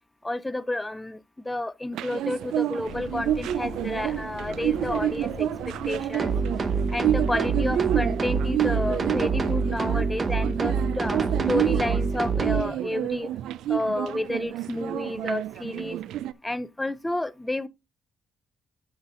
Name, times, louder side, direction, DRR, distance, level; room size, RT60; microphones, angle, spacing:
voice 1, 0.2-6.3 6.9-13.3 13.7-16.0 16.4-17.7, left 1 dB, 10° left, 0.5 m, -30 dB
sound 1, 1.9-16.3, right 12 dB, 85° right, 0.3 m, -29 dB
sound 2, 2.8-9.0, left 3 dB, 30° left, 2.1 m, -41 dB
sound 3, 6.2-12.6, right 4 dB, 35° right, 0.9 m, -26 dB
13.5 x 5.7 x 2.4 m
cardioid pair, 90°, 0 cm